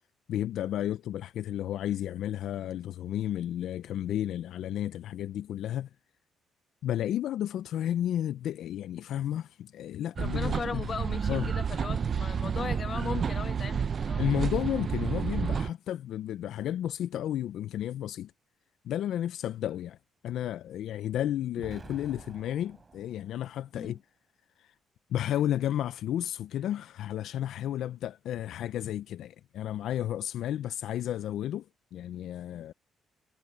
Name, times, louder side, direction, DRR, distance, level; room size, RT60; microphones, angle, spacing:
voice 1, 0.3-5.9 6.8-10.9 11.3-11.5 14.2-18.3 18.8-20.0 20.2-24.0 24.6-24.7 25.1-31.7 31.9-32.7, left 11 dB, 75° left, 0.4 m, -32 dB
voice 2, 10.2-14.3 23.7-24.0, left 5 dB, 45° left, 1.2 m, -37 dB
sound 1, 10.2-15.7, right 6 dB, 45° right, 0.4 m, -30 dB
Explosion, 21.6-23.7, right 4 dB, 30° right, 4.0 m, -49 dB
cardioid pair, 90°, 0 cm